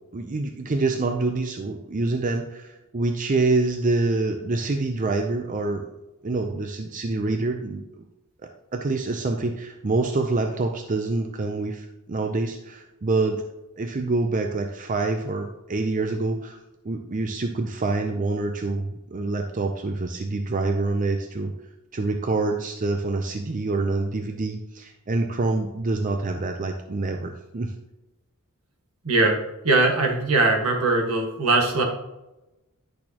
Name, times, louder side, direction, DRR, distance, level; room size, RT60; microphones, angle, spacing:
voice 1, 0.1-5.9 6.2-8.0 8.4-13.4 13.8-16.6 16.8-21.5 21.9-27.7, right 3 dB, 35° right, 5 dB, 0.5 m, -26 dB
voice 2, 29.0-29.4 29.6-31.8, right 2 dB, 70° right, 1 dB, 1.6 m, -20 dB
10.5 x 6.4 x 2.9 m, 1.0 s
head